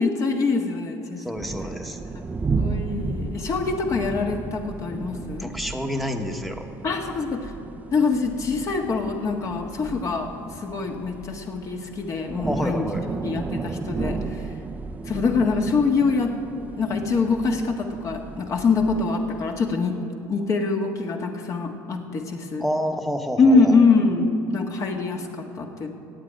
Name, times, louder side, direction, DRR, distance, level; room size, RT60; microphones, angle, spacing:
voice 1, 0.0-1.2 2.6-5.5 6.8-7.4 7.9-10.3 10.6-12.8 13.2-14.2 15.1-16.3 16.8-19.9 20.3-22.6 23.4-25.9, left 4 dB, 40° left, 3 dB, 1.7 m, -24 dB
voice 2, 1.2-2.0 5.4-6.7 12.4-13.1 22.6-23.8, equal, ahead, 4 dB, 1.2 m, -29 dB
sound 1, 1.4-19.7, right 4 dB, 20° right, 0.6 m, -34 dB
15.0 x 8.9 x 9.3 m, 2.7 s
cardioid pair, 130°, 8 cm